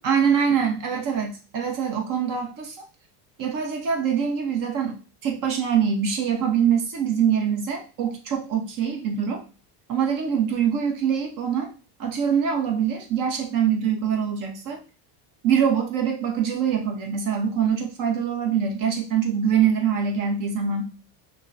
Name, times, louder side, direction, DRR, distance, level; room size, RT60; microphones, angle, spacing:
voice 1, 0.0-2.9 3.4-9.4 9.9-11.7 12.0-14.8 15.4-20.9, right 7 dB, 45° right, 3 dB, 0.8 m, -24 dB
5.9 x 2.1 x 2.5 m, 0.34 s
cardioid pair, 145°, 47 cm